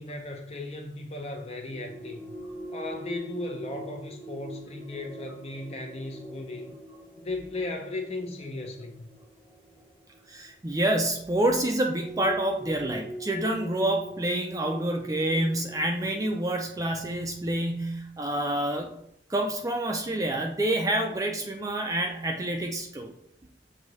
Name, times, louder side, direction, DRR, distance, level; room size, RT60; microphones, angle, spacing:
voice 1, 0.0-2.2 2.7-6.8 7.2-9.1, left 2 dB, 35° left, 3 dB, 0.6 m, -36 dB
sound 1, 1.7-10.9 11.9-16.3, right 1 dB, 15° left, 1.3 m, -43 dB
voice 2, 10.3-19.0 19.3-23.1, right 1 dB, 20° right, 2 dB, 0.4 m, -28 dB
6.2 x 2.7 x 3.1 m, 0.70 s
head